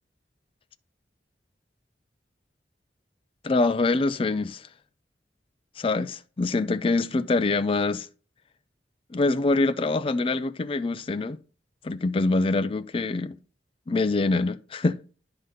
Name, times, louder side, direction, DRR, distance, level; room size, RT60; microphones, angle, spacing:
voice 1, 3.4-4.7 5.8-8.1 9.1-11.4 11.8-13.4 13.9-15.0, left 3 dB, 30° left, 0.4 m, -25 dB
10.5 x 4.0 x 6.6 m
head